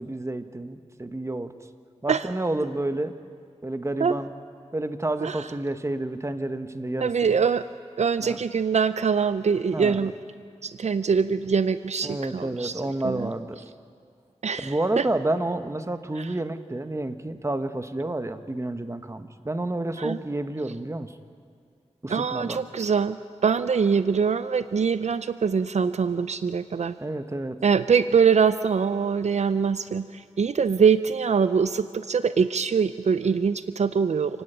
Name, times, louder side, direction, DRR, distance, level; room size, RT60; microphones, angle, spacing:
voice 1, 0.0-1.5 2.0-3.1 3.6-4.3 4.7-7.1 8.2-8.4 9.7-10.1 12.0-13.6 14.6-21.1 22.0-22.6 27.0-27.6, right 2 dB, 25° right, 9 dB, 1.1 m, -30 dB
voice 2, 7.0-7.7 8.0-10.1 10.6-13.3 14.4-15.0 16.2-16.3 20.0-20.2 22.1-23.2 23.4-26.9 27.6-34.4, right 6 dB, 70° right, 12 dB, 0.5 m, -23 dB
28.5 x 10.0 x 9.0 m, 2.3 s
wide cardioid pair, 55°, 12 cm